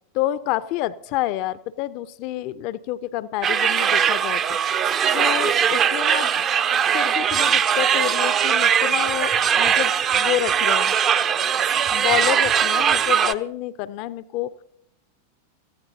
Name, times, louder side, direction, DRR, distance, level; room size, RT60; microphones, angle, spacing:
voice 1, 0.1-4.6 5.1-6.4 6.9-10.9 11.9-14.5, left 14 dB, 45° left, 16 dB, 0.5 m, -28 dB
sound 1, 3.4-13.3, right 8 dB, 30° right, 0.6 m, -20 dB
27.0 x 15.0 x 2.7 m, 0.72 s
figure-of-eight pair, 90°, 0 cm